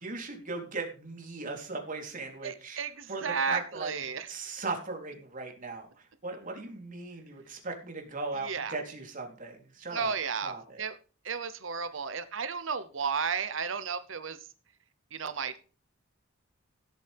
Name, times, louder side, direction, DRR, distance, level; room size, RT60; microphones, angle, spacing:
voice 1, 0.0-2.8 3.1-10.1 10.4-10.8, right 3 dB, 40° right, 2 dB, 3.5 m, -38 dB
voice 2, 2.4-4.3 8.4-8.8 9.9-10.5 10.8-11.0 11.2-14.4 15.1-15.6, right 6 dB, 70° right, 12 dB, 0.9 m, -33 dB
17.0 x 8.7 x 3.5 m, 0.36 s
head